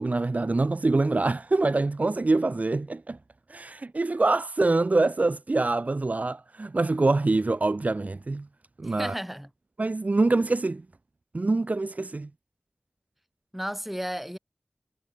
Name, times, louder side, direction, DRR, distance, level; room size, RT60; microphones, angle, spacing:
voice 1, 0.0-3.2 3.5-8.5 8.8-9.1 9.8-10.8 11.3-12.3, right 3 dB, 55° right, 1.4 m, -25 dB
voice 2, 8.8-9.5 13.5-14.4, equal, 5° right, 6.0 m, -33 dB
wide cardioid pair, 60°, 3 cm